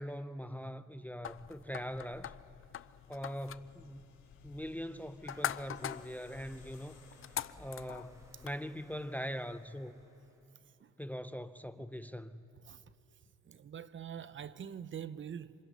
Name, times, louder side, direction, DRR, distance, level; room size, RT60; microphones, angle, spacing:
voice 1, 0.0-2.3 3.1-4.1 4.4-7.0 7.6-10.0 11.0-12.4, equal, 5° left, 0.6 m, -42 dB
sound 1, 1.2-8.6, left 10 dB, 45° left, 0.5 m, -44 dB
sound 2, 2.6-8.6, left 7 dB, 80° left, 5.5 m, -69 dB
sound 3, 5.3-10.5, equal, 10° right, 4.1 m, -61 dB
voice 2, 13.4-15.5, right 8 dB, 40° right, 0.7 m, -44 dB
27.0 x 26.0 x 5.5 m
cardioid pair, 90°, 30 cm